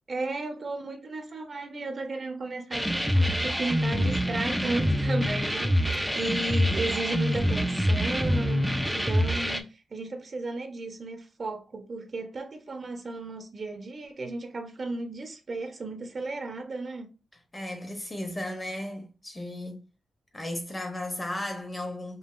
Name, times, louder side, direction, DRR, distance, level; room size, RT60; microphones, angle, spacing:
voice 1, 0.1-17.1, right 2 dB, 35° right, 0.7 m, -35 dB
sound 1, 2.7-9.6, equal, ahead, 0.4 m, -26 dB
voice 2, 17.5-19.8 20.3-22.2, left 1 dB, 15° left, 0.8 m, -35 dB
5.4 x 2.4 x 2.5 m
wide cardioid pair, 165°, 0 cm